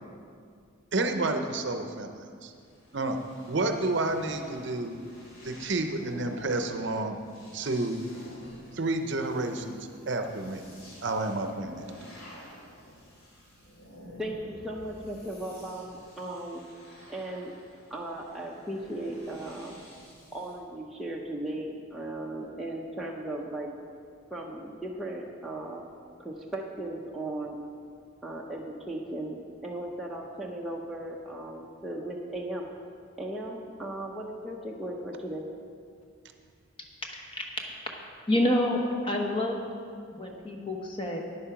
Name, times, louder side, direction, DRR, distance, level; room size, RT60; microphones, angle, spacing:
voice 1, 0.9-2.5 2.9-3.2 3.5-5.0 5.4-7.2 7.5-8.0 8.7-10.6 11.0-11.8, right 2 dB, 55° right, 6 dB, 0.7 m, -30 dB
sound 1, 2.4-20.6, equal, 75° left, 2.7 m, -50 dB
voice 2, 14.2-16.6 17.1-17.5 17.9-19.8 20.3-23.7 24.3-25.9 26.2-27.7 28.2-32.7 33.2-35.5, right 1 dB, ahead, -3 dB, 0.7 m, -37 dB
voice 3, 37.1-37.4 38.3-39.7 40.1-41.2, left 1 dB, 25° left, 1 dB, 1.1 m, -28 dB
9.9 x 8.5 x 5.8 m, 2.2 s
head